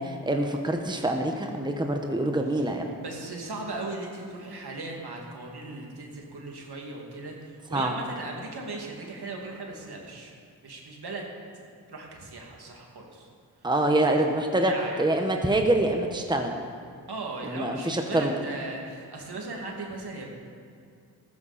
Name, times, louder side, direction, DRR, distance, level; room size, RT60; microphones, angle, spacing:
voice 1, 0.0-2.9 7.7-7.9 13.6-14.7 15.0-16.5 17.4-18.3, right 1 dB, 10° right, 3 dB, 1.3 m, -25 dB
voice 2, 3.0-10.3 10.6-11.2 11.9-13.3 13.6-13.7 14.0-14.1 14.4-15.1 17.1-20.3, right 2 dB, 65° right, 0 dB, 2.5 m, -38 dB
14.5 x 13.5 x 4.3 m, 2.4 s
cardioid pair, 55°, 41 cm